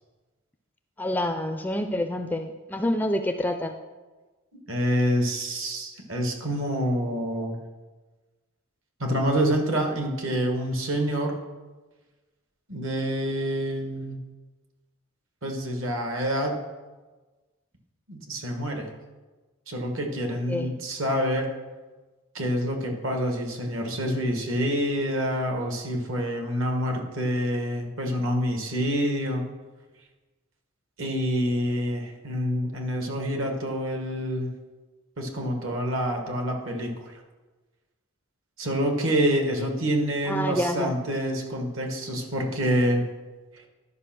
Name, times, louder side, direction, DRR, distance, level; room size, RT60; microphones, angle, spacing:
voice 1, 1.0-3.7 20.5-20.7 40.3-40.9, left 1 dB, 10° left, 7 dB, 0.4 m, -27 dB
voice 2, 4.7-7.6 9.0-11.4 12.7-14.2 15.4-16.6 18.1-18.9 19.7-21.5 22.3-29.4 31.0-34.5 35.2-36.9 38.6-43.0, equal, 65° right, 3 dB, 1.5 m, -27 dB
11.5 x 5.2 x 6.0 m, 1.3 s
head